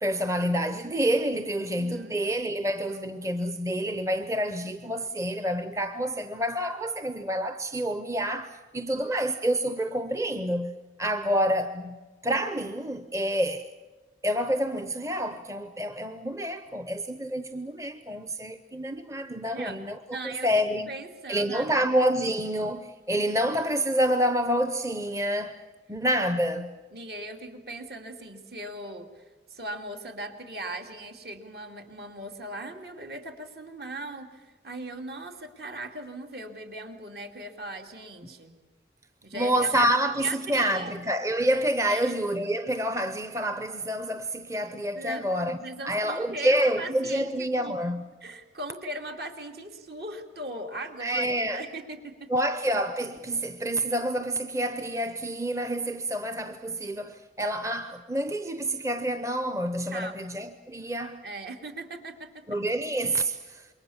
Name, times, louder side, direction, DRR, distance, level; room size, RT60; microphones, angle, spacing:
voice 1, 0.0-12.0 12.2-13.7 14.2-20.0 20.2-20.9 21.3-25.6 25.9-26.7 38.2-38.3 39.3-45.6 45.8-48.0 51.0-51.6 52.3-61.2 62.5-63.7, right 1 dB, 15° right, 0.8 m, -28 dB
voice 2, 1.7-2.2 19.5-19.8 20.1-20.5 20.9-21.9 26.9-38.5 39.2-39.9 40.2-40.9 41.9-42.1 45.0-47.7 48.2-52.3 59.9-60.2 61.2-62.5, right 1 dB, 60° right, 2.8 m, -39 dB
27.5 x 22.5 x 7.2 m
head